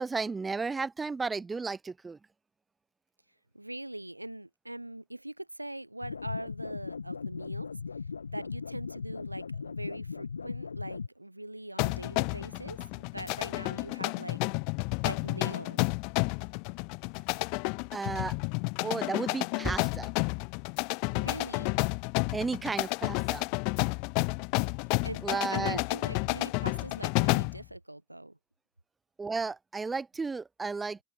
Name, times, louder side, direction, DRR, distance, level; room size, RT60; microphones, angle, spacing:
voice 1, 0.0-2.2 17.9-18.3 18.8-20.1 22.3-23.4 25.2-25.8 29.2-31.0, right 4 dB, 10° right, 0.6 m, -33 dB
voice 2, 3.5-7.7 8.3-14.4 15.0-15.8 21.1-21.7 25.0-28.4, right 1 dB, 85° right, 0.6 m, -42 dB
sound 1, 6.0-11.1, left 5 dB, 75° left, 1.4 m, -38 dB
sound 2, 11.8-27.6, left 37 dB, 45° left, 0.6 m, -31 dB
open air
figure-of-eight pair, 90°, 0 cm